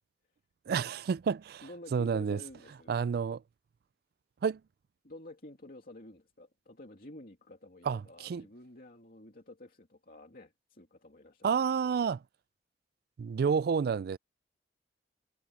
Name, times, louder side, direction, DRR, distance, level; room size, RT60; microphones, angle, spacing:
voice 1, 0.7-2.4 2.9-3.4 4.4-4.6 7.8-8.4 11.4-12.2 13.2-14.2, right 6 dB, 60° right, 0.3 m, -30 dB
voice 2, 1.6-3.0 5.0-11.7, left 1 dB, 55° left, 2.7 m, -51 dB
head